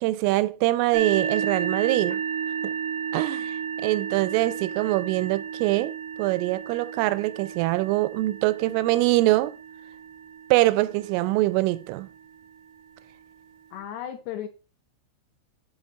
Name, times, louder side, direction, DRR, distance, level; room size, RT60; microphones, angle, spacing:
voice 1, 0.0-2.2 2.6-2.7 3.1-3.6 3.8-9.5 10.5-12.1, right 18 dB, 90° right, 3.2 m, -24 dB
sound 1, 0.9-12.4, right 7 dB, 60° right, 2.5 m, -33 dB
voice 2, 13.7-14.5, left 10 dB, 75° left, 2.7 m, -34 dB
7.5 x 5.8 x 5.2 m
omnidirectional pair, 5.6 m